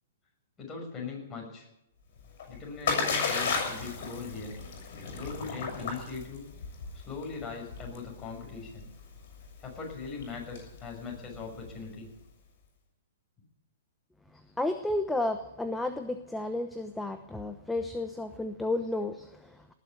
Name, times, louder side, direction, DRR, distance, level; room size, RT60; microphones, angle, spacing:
voice 1, 0.6-1.7 2.5-4.6 5.1-6.5 6.9-8.9 9.6-12.1 18.8-18.9, left 4 dB, 20° left, -1 dB, 6.4 m, -40 dB
Splash splatter, 2.2-12.0, left 5 dB, 55° left, 6.3 m, -35 dB
voice 2, 14.6-19.7, left 2 dB, 5° left, 8 dB, 0.9 m, -32 dB
19.0 x 7.3 x 9.7 m, 0.88 s
hypercardioid pair, 120°, 0 cm